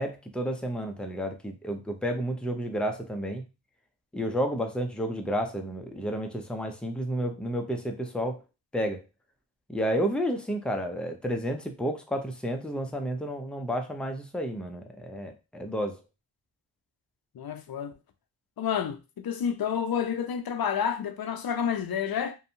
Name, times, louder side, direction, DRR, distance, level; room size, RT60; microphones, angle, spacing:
voice 1, 0.0-3.4 4.1-8.4 8.7-9.0 9.7-16.0, equal, ahead, 0.5 m, -31 dB
voice 2, 17.3-17.9 18.6-22.4, left 8 dB, 50° left, 0.6 m, -29 dB
2.6 x 2.3 x 2.6 m
cardioid pair, 50°, 48 cm